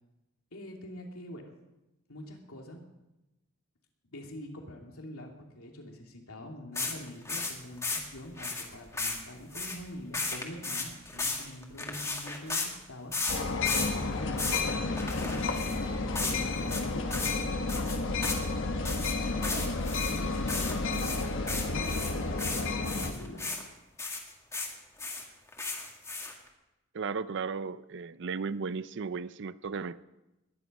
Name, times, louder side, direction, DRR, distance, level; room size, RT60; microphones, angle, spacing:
voice 1, 0.5-1.5 2.1-2.8 4.0-13.1 14.1-15.0 15.3-18.0 19.0-23.5, left 1 dB, 85° left, 1 dB, 2.6 m, -45 dB
sound 1, 6.8-12.7 13.1-13.9 14.2-14.6 15.0-15.8 16.1-16.4 16.7-16.8 17.1-17.4 17.7-18.4 18.8-23.6 24.0-24.7 25.0-26.5, left 3 dB, 15° left, 1.9 m, -35 dB
sound 2, 13.3-23.1, left 3 dB, 60° left, 1.3 m, -31 dB
voice 2, 26.9-30.0, right 5 dB, 55° right, 16 dB, 0.5 m, -35 dB
20.5 x 10.5 x 5.4 m, 1.0 s
head